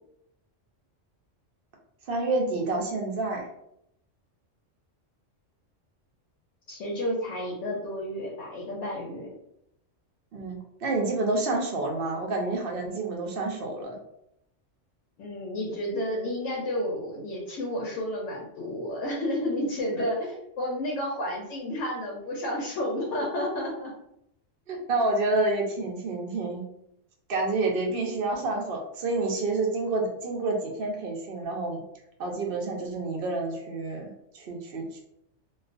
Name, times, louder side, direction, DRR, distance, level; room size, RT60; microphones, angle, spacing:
voice 1, 2.1-3.5 10.3-14.0 24.7-26.6 27.3-31.8 32.2-35.0, right 2 dB, 60° right, 1 dB, 0.6 m, -29 dB
voice 2, 6.7-9.3 15.2-23.9, left 1 dB, 80° left, -2 dB, 1.0 m, -31 dB
2.3 x 2.3 x 2.4 m, 0.78 s
omnidirectional pair, 1.3 m